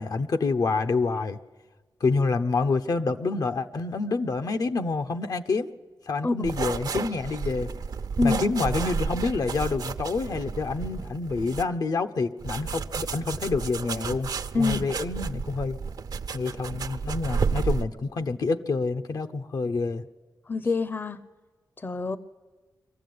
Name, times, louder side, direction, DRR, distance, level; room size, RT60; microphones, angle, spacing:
voice 1, 0.0-1.4 2.0-5.7 6.1-7.7 8.2-14.3 14.6-15.8 16.3-20.1, left 4 dB, 65° left, 8 dB, 0.9 m, -27 dB
sound 1, 6.4-11.6 12.4-17.8, right 5 dB, 70° right, 0.8 m, -31 dB
voice 2, 14.5-14.9 20.5-21.2 21.8-22.2, left 3 dB, 30° left, 16 dB, 0.7 m, -26 dB
23.0 x 15.0 x 9.4 m, 1.3 s
wide cardioid pair, 100°, 7 cm